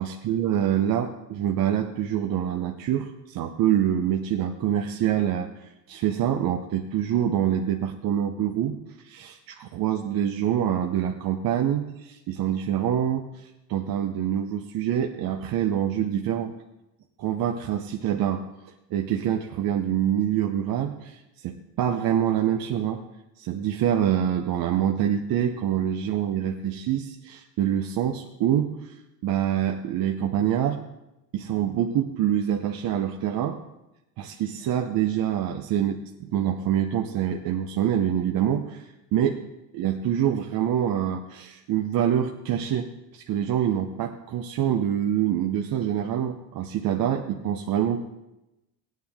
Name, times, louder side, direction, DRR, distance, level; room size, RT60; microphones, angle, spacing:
voice 1, 0.0-16.5 17.2-23.0 23.4-29.0 29.2-30.8 31.3-33.6 34.2-39.4 39.7-48.0, right 10 dB, 60° right, 3 dB, 0.9 m, -26 dB
16.5 x 9.3 x 3.6 m, 0.94 s
cardioid pair, 100°, 40 cm